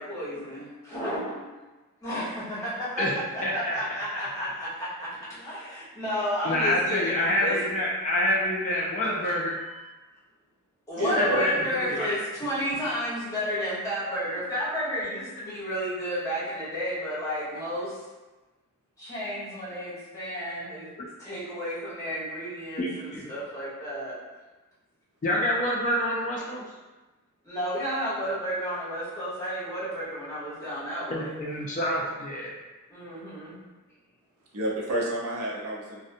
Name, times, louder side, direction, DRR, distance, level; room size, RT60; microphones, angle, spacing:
voice 1, 0.0-1.5 2.0-3.0 3.5-7.1 7.4-7.6 9.6-9.8 10.9-18.0 19.0-20.9 21.2-24.1 27.4-31.3 32.9-33.6, equal, 15° left, -10 dB, 1.0 m, -31 dB
voice 2, 3.4-4.0 6.4-9.6 11.2-12.2 22.8-23.3 25.2-26.6 31.1-32.5, left 1 dB, 35° left, -4 dB, 0.3 m, -27 dB
voice 3, 11.0-11.6 11.9-12.0 34.5-36.0, right 1 dB, 80° right, -3 dB, 0.6 m, -30 dB
2.6 x 2.0 x 2.5 m, 1.2 s
head